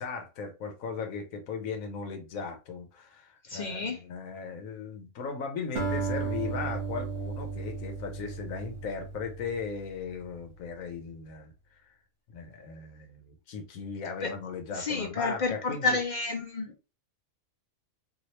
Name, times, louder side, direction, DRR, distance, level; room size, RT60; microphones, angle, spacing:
voice 1, 0.0-11.9 12.3-16.0, left 5 dB, 80° left, 1.1 m, -37 dB
voice 2, 3.5-4.0 14.2-14.3 14.7-16.7, left 3 dB, 50° left, 0.5 m, -30 dB
Acoustic guitar, 5.8-10.2, right 5 dB, 50° right, 1.3 m, -35 dB
2.8 x 2.8 x 3.1 m
omnidirectional pair, 1.4 m